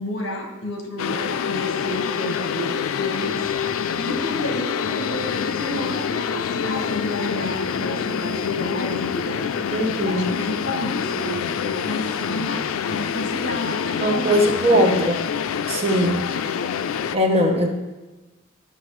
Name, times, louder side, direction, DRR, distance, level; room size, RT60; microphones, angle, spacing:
voice 1, 0.0-9.4 10.0-15.0 15.9-16.2, equal, 65° left, 2 dB, 1.3 m, -31 dB
sound 1, 1.0-17.2, left 7 dB, 90° left, 0.3 m, -26 dB
voice 2, 9.7-10.3 14.0-15.2 15.7-16.2 17.1-17.7, equal, 30° right, 2 dB, 0.9 m, -20 dB
11.5 x 5.6 x 3.2 m, 1.2 s
head